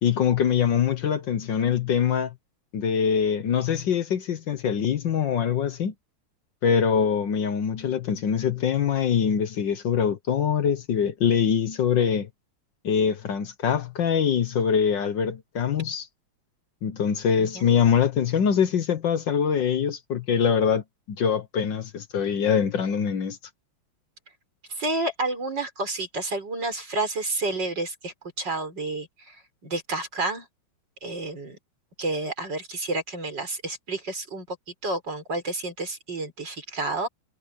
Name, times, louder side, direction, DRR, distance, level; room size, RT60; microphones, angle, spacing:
voice 1, 0.0-2.3 2.7-5.9 6.6-12.3 12.8-16.1 16.8-20.8 21.2-23.4, left 7 dB, 60° left, 1.6 m, -23 dB
voice 2, 17.4-17.8 24.7-29.4 29.6-30.5 31.0-31.6 32.0-34.6 34.8-37.1, right 2 dB, 55° right, 6.0 m, -30 dB
omnidirectional pair, 2.3 m